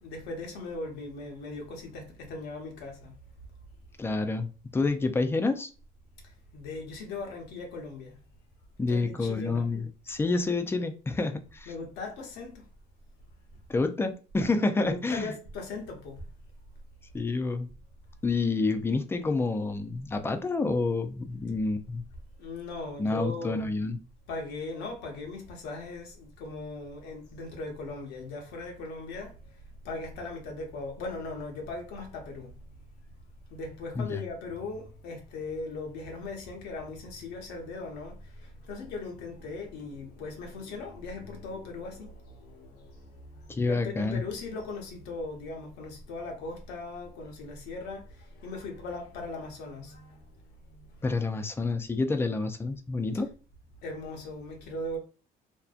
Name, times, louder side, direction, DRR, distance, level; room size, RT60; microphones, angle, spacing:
voice 1, 0.0-3.1 6.2-8.2 8.9-9.7 11.7-12.6 14.8-16.2 22.4-23.7 24.3-29.6 29.8-32.5 33.5-51.2 53.8-55.0, left 3 dB, 85° left, 0.7 m, -39 dB
voice 2, 4.0-5.7 8.8-11.7 13.7-15.3 17.1-17.7 18.2-22.0 23.0-24.0 34.0-34.2 43.5-44.2 51.0-53.3, left 3 dB, 15° left, 0.3 m, -28 dB
2.5 x 2.1 x 2.4 m
cardioid pair, 110°, 17 cm